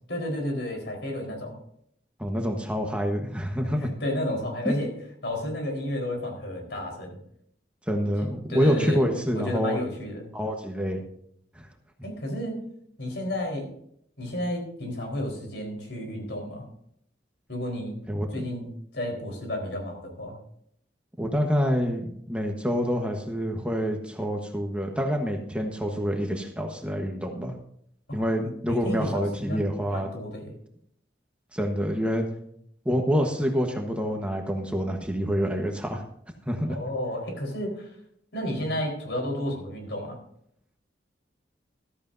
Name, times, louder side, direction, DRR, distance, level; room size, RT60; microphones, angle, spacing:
voice 1, 0.1-1.6 3.8-4.9 5.2-7.2 8.5-9.0 9.3-10.3 12.0-12.6 13.0-13.7 14.2-16.7 17.5-18.0 18.3-18.7 18.9-20.4 28.1-28.2 28.7-29.6 29.9-30.5 36.7-37.9 38.3-40.2, left 1 dB, 80° left, 2 dB, 4.2 m, -32 dB
voice 2, 2.2-3.9 7.9-9.8 10.3-11.0 11.5-11.7 18.1-18.3 21.2-27.5 28.1-30.1 31.5-32.3 32.8-36.0 36.5-36.8, equal, 5° right, 2 dB, 1.2 m, -27 dB
14.5 x 13.5 x 2.7 m, 0.69 s
head